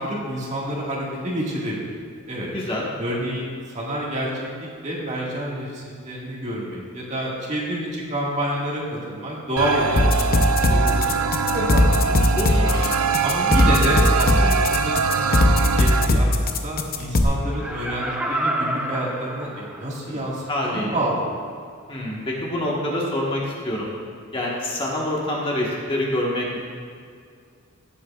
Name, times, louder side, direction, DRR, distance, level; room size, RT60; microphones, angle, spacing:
voice 1, 0.0-2.5 3.0-4.3 4.8-11.1 11.5-12.1 13.2-15.4 15.8-21.2, right 1 dB, 35° right, -4 dB, 1.8 m, -28 dB
voice 2, 2.4-2.8 12.3-12.9 20.0-21.0 21.9-23.9 24.3-26.6, left 1 dB, 25° left, -4 dB, 1.4 m, -26 dB
sound 1, 9.6-16.1, right 5 dB, 80° right, 0.5 m, -23 dB
sound 2, 10.0-17.2, left 1 dB, 40° left, 0.7 m, -18 dB
Laughter, 17.5-20.1 20.6-20.7, right 1 dB, 5° right, 0.5 m, -28 dB
16.5 x 8.3 x 2.4 m, 2.2 s
head